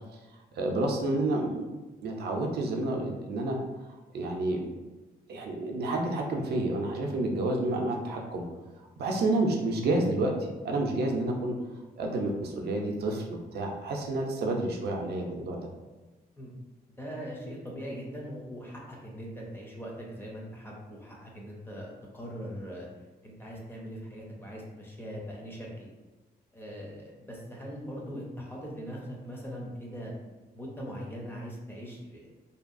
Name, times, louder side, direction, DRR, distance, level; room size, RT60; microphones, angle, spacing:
voice 1, 0.5-1.7 2.0-3.6 4.1-4.7 5.3-8.4 9.0-10.3 10.6-11.6 12.0-15.7, right 2 dB, 75° right, 1 dB, 0.5 m, -29 dB
voice 2, 17.0-22.9 23.2-25.9 26.5-30.1 30.5-32.3, equal, 15° left, -3 dB, 0.5 m, -41 dB
2.7 x 2.2 x 2.5 m, 1.2 s
wide cardioid pair, 150°, 17 cm